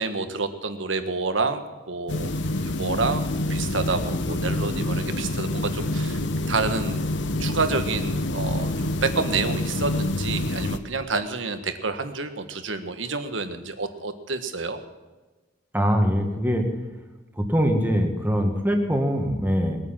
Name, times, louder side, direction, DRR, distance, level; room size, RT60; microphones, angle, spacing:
voice 1, 0.0-1.6 1.9-3.2 3.5-6.2 6.5-7.1 7.4-14.8, right 4 dB, 85° right, 8 dB, 1.5 m, -28 dB
sound 1, 2.1-10.8, left 1 dB, 70° left, 1.0 m, -27 dB
voice 2, 15.7-16.6 17.4-19.8, equal, 10° right, 3 dB, 1.9 m, -22 dB
20.0 x 9.4 x 7.5 m, 1.2 s
head